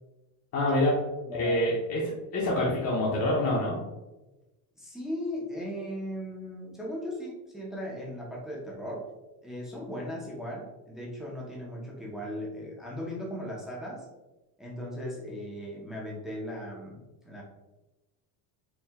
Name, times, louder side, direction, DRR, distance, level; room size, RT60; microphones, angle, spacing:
voice 1, 0.5-0.9 1.4-2.0 2.3-3.8, left 1 dB, 40° left, -5 dB, 0.7 m, -26 dB
voice 2, 1.2-1.6 4.8-9.0 9.4-14.1 14.6-17.4, equal, ahead, -4 dB, 0.5 m, -37 dB
4.5 x 2.1 x 3.3 m, 1.0 s
cardioid pair, 165°, 40 cm